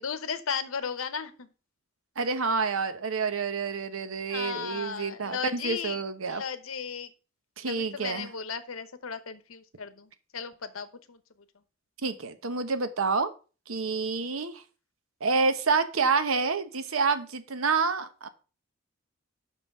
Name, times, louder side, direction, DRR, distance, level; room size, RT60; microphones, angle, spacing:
voice 1, 0.0-1.5 4.3-6.0 6.3-7.1 7.7-11.2, left 6 dB, 85° left, 12 dB, 0.9 m, -35 dB
voice 2, 2.2-6.4 7.6-8.3 12.0-13.3 13.7-14.6 15.2-18.3, right 4 dB, 85° right, 10 dB, 1.0 m, -28 dB
5.9 x 5.6 x 5.9 m, 0.35 s
head